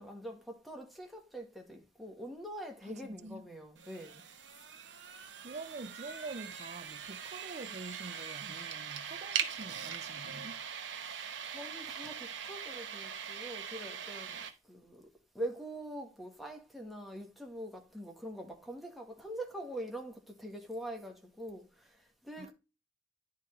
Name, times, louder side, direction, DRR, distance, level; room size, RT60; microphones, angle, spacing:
voice 1, 0.0-4.2 10.9-15.1 15.3-22.5, right 1 dB, ahead, 1.5 m, -44 dB
voice 2, 2.8-3.4 5.4-10.6 22.4-22.5, right 3 dB, 40° right, 0.5 m, -46 dB
sound 1, 3.8-14.5, right 7 dB, 75° right, 1.0 m, -41 dB
10.0 x 3.6 x 4.3 m
head